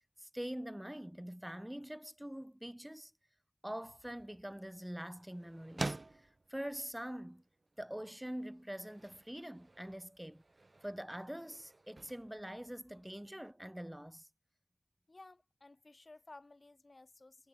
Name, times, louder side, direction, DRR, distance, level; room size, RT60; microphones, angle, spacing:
voice 1, 0.2-3.1 3.6-7.4 7.8-10.4 10.8-14.3, equal, 10° right, 0.8 m, -44 dB
sound 1, 3.7-13.5, right 2 dB, 45° right, 1.0 m, -49 dB
voice 2, 15.1-17.5, left 2 dB, 50° left, 3.5 m, -56 dB
wide cardioid pair, 60°, 0 cm